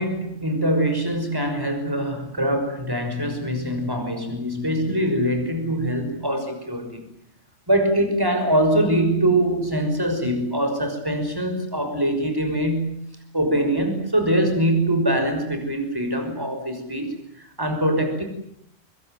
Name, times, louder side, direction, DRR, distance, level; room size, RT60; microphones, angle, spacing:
voice 1, 0.0-7.0 7.7-18.2, right 1 dB, 20° right, 6 dB, 5.9 m, -23 dB
24.5 x 23.5 x 9.4 m, 0.75 s
omnidirectional pair, 1.3 m